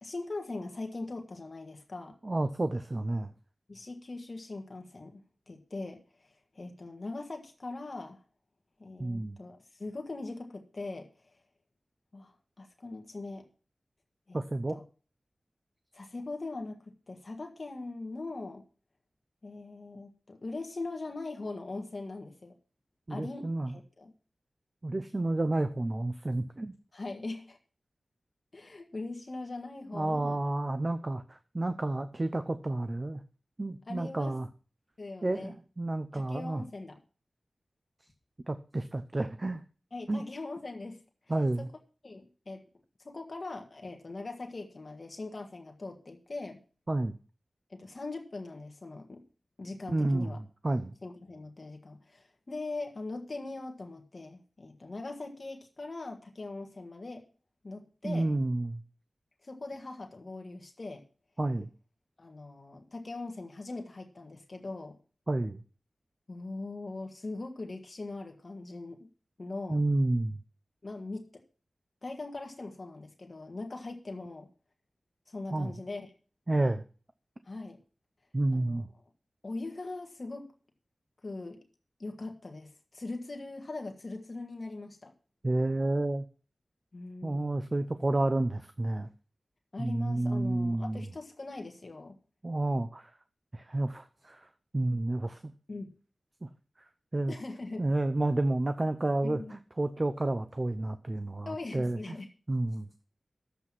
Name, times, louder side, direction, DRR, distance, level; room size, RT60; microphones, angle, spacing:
voice 1, 0.0-2.2 3.7-5.2 5.5-8.2 8.8-11.3 12.1-13.5 14.3-14.4 14.7-14.8 15.9-18.6 19.4-22.5 23.1-24.1 26.9-27.6 28.5-30.4 33.9-34.3 35.0-35.5 36.1-37.0 39.9-41.0 41.6-41.7 42.0-42.6 43.0-46.6 47.7-49.2 49.6-50.4 51.0-57.2 57.6-58.3 59.4-61.1 62.2-65.0 66.3-69.1 69.4-69.8 70.8-71.3 72.0-74.5 75.3-76.1 77.4-77.8 78.5-78.8 79.4-80.5 81.2-81.6 82.0-85.1 86.9-87.5 89.7-92.1 95.7-95.9 97.3-97.8 99.2-99.5 101.4-102.3, left 2 dB, 45° left, 3 dB, 1.7 m, -41 dB
voice 2, 2.2-3.3 9.0-9.4 14.3-14.8 23.1-23.8 24.8-26.7 29.9-33.2 33.6-34.5 35.2-36.6 38.5-39.6 40.1-40.2 41.3-41.7 46.9-47.1 49.9-50.9 58.0-58.8 61.4-61.7 65.3-65.6 69.7-70.4 75.5-75.7 76.5-76.8 78.3-78.9 85.4-86.2 87.2-89.1 89.8-91.1 92.4-93.1 93.5-94.4 94.7-95.5 96.4-96.5 97.1-97.3 97.8-102.0 102.5-102.9, right 2 dB, 30° right, 10 dB, 0.7 m, -30 dB
11.5 x 8.0 x 6.1 m, 0.39 s
wide cardioid pair, 90°, 0 cm